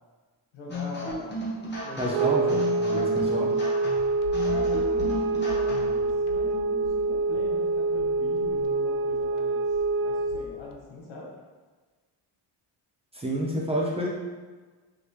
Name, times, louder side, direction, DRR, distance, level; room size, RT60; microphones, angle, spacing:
voice 1, 0.5-1.4 1.8-2.6 4.5-9.7 10.0-11.3, left 2 dB, 85° left, -3 dB, 1.5 m, -42 dB
sound 1, 0.7-6.0, left 1 dB, 25° left, 0.9 m, -34 dB
voice 2, 2.0-3.5 13.1-14.1, equal, 15° right, -4 dB, 0.6 m, -29 dB
sound 2, 2.1-10.5, right 3 dB, 85° right, 0.6 m, -26 dB
sound 3, 4.0-10.8, left 5 dB, 65° left, 0.5 m, -44 dB
5.2 x 3.0 x 3.2 m, 1.4 s
cardioid pair, 150°, 45 cm